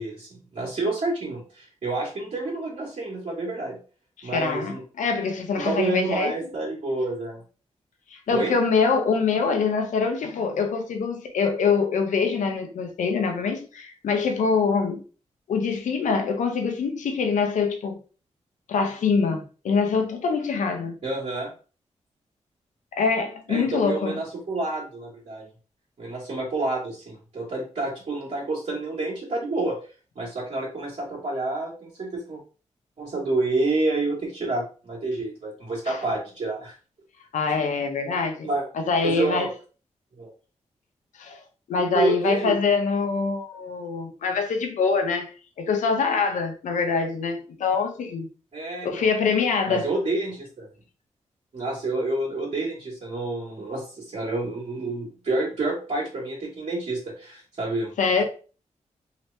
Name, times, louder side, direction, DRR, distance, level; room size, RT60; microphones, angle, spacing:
voice 1, 0.0-3.8 4.2-4.8 5.5-7.4 8.3-8.5 21.0-21.5 23.5-25.5 26.0-29.8 30.1-32.4 33.0-36.8 38.4-38.6 39.0-39.5 40.2-40.3 41.7-42.6 48.5-49.1 49.7-50.7 51.5-57.9, right 2 dB, 60° right, 1.3 m, -29 dB
voice 2, 4.2-6.3 8.1-15.0 15.5-18.0 18.7-21.0 22.9-24.2 35.9-36.0 37.3-38.5 38.7-39.5 41.2-41.4 41.7-48.3 48.8-49.9 58.0-58.2, left 5 dB, 90° left, 0.6 m, -24 dB
2.9 x 2.9 x 3.2 m
cardioid pair, 65°, 13 cm